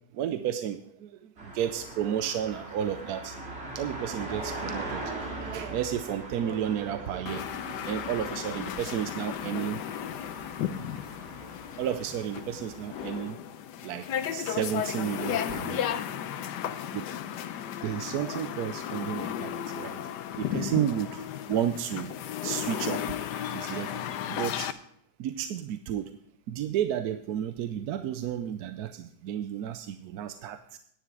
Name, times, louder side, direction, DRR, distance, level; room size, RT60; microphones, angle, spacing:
voice 1, 0.1-3.4 3.7-9.8 11.4-11.5 11.8-13.4 13.8-14.1 14.3-15.8 16.9-17.1 17.8-20.0 20.4-21.2 21.5-22.1 22.4-23.2 23.5-24.0 24.3-24.7 25.2-26.1 26.5-30.8, right 10 dB, 75° right, 9 dB, 1.1 m, -32 dB
sound 1, 1.4-13.3, right 2 dB, 45° right, 2.4 m, -41 dB
sound 2, 7.3-24.7, left 10 dB, 90° left, 1.3 m, -34 dB
10.0 x 10.0 x 4.7 m, 0.68 s
omnidirectional pair, 1.7 m